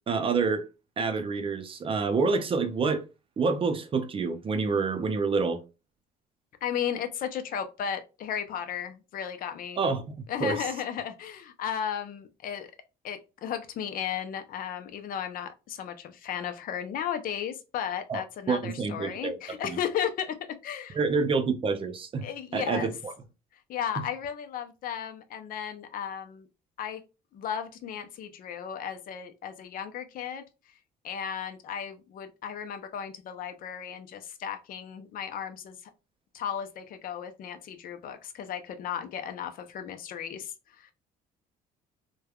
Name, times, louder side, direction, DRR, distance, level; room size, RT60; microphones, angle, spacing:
voice 1, 0.1-0.7 1.0-3.0 3.4-5.6 9.8-10.6 18.1-19.4 19.6-19.8 20.9-22.3 22.5-23.1 24.0-24.1, right 4 dB, 30° right, 0.5 m, -28 dB
voice 2, 6.6-9.8 10.3-12.7 13.0-20.4 20.6-21.0 22.2-22.9 23.7-26.5 26.8-27.0 27.3-30.4 31.0-35.8 36.3-40.9, left 8 dB, 55° left, 0.6 m, -35 dB
3.2 x 2.2 x 2.3 m
cardioid pair, 110°, 17 cm